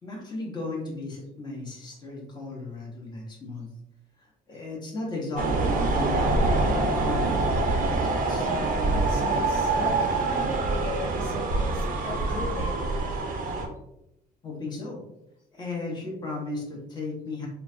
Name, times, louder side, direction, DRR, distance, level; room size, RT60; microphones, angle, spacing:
voice 1, 0.0-3.7 4.2-8.5 14.4-15.0 15.5-17.5, left 2 dB, 25° left, -3 dB, 1.0 m, -35 dB
sound 1, 5.4-13.7, right 3 dB, 55° right, 0.5 m, -25 dB
voice 2, 8.8-12.8, left 3 dB, 50° left, -5 dB, 0.8 m, -37 dB
3.1 x 2.1 x 2.6 m, 0.84 s
cardioid pair, 110°, 17 cm